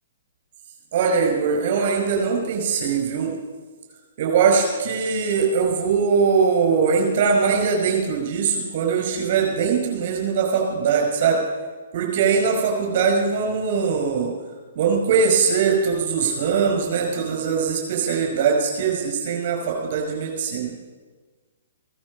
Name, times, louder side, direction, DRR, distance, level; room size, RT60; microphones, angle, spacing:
voice 1, 0.9-3.3 4.2-11.4 11.9-14.3 14.7-20.7, right 5 dB, 45° right, 2 dB, 5.6 m, -21 dB
16.5 x 12.5 x 5.5 m, 1.4 s
figure-of-eight pair, 120°, 0 cm